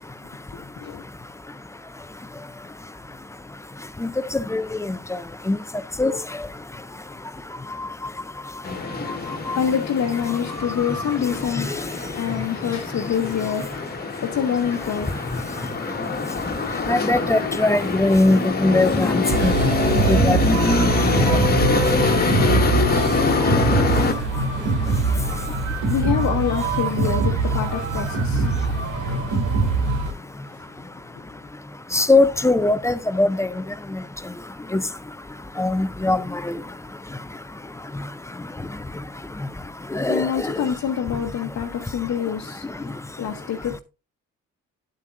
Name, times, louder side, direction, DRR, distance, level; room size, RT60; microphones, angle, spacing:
voice 1, 0.5-1.0 9.5-11.7 12.2-13.7 14.2-15.2 25.9-28.5 40.1-43.8, left 8 dB, 60° left, 1.1 m, -26 dB
sound 1, 8.6-24.1, left 3 dB, 30° left, 1.5 m, -24 dB
voice 2, 16.9-19.5 20.1-20.4 31.9-33.5 34.7-34.8 35.6-36.2 36.5-36.6 39.9-40.6, left 2 dB, 10° left, 0.5 m, -20 dB
sound 2, 19.3-30.1, right 3 dB, 75° right, 2.4 m, -22 dB
9.0 x 8.1 x 2.5 m
cardioid pair, 90°, 30 cm